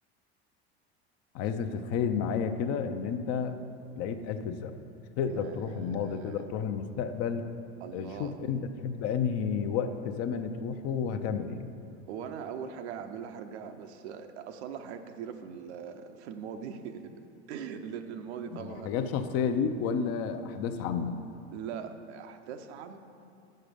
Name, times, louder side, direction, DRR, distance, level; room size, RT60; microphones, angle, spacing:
voice 1, 1.3-3.6 4.0-4.8 5.2-7.5 7.9-11.6 18.6-21.2, left 6 dB, 50° left, 8 dB, 0.6 m, -31 dB
voice 2, 5.3-6.5 7.8-8.4 12.1-17.2 17.5-19.1 21.5-23.0, right 7 dB, 80° right, 7 dB, 0.7 m, -41 dB
7.4 x 6.6 x 5.1 m, 2.5 s
supercardioid pair, 115°, 32 cm